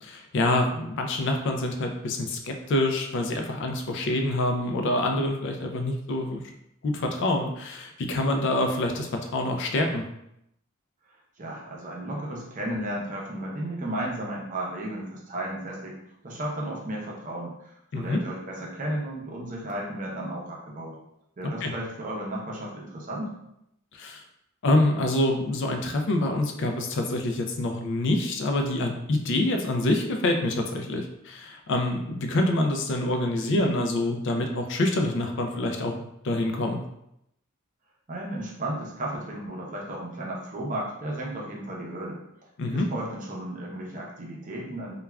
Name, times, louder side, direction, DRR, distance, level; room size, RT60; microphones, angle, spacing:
voice 1, 0.0-6.4 6.8-10.0 17.9-18.2 21.6-21.7 23.9-24.2 24.6-36.0 36.2-36.8 42.6-42.9, left 1 dB, 60° left, 4 dB, 0.4 m, -26 dB
voice 2, 11.4-16.0 16.2-21.0 21.4-23.3 38.1-42.2 42.7-44.9, right 1 dB, 40° right, -2 dB, 0.6 m, -34 dB
3.2 x 2.3 x 2.2 m, 0.79 s
head